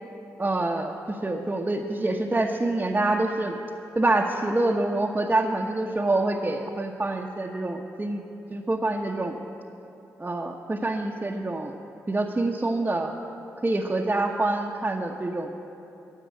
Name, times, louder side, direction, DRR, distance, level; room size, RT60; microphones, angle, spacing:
voice 1, 0.4-3.6 4.0-8.2 8.5-9.4 10.2-11.7 12.1-13.1 13.6-15.6, right 2 dB, 25° right, -1 dB, 0.9 m, -26 dB
10.5 x 7.4 x 9.2 m, 2.9 s
supercardioid pair, 50°, 7 cm